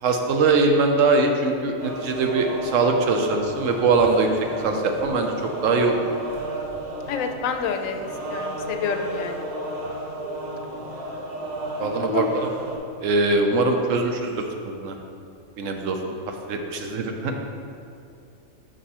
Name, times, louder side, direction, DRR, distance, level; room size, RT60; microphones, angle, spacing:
voice 1, 0.0-4.3 4.6-5.3 5.6-6.0 11.8-12.5 13.0-15.0 15.6-16.1 16.5-17.3, right 3 dB, 80° right, 4 dB, 1.0 m, -22 dB
sound 1, 1.8-12.8, right 1 dB, 40° right, 0.8 m, -33 dB
voice 2, 7.1-9.5 12.0-12.3, left 6 dB, 90° left, 5 dB, 1.0 m, -28 dB
5.4 x 5.3 x 4.2 m, 2.5 s
omnidirectional pair, 1.3 m